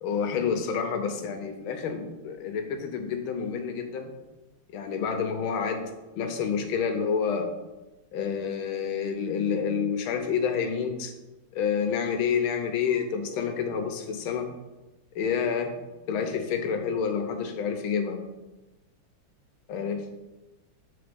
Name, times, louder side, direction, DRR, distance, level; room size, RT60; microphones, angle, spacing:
voice 1, 0.0-4.1 4.7-7.5 8.1-11.1 11.5-14.5 15.1-15.7 16.1-18.2 19.7-20.0, left 6 dB, 90° left, 5 dB, 1.6 m, -28 dB
7.8 x 3.6 x 5.1 m, 1.1 s
omnidirectional pair, 2.2 m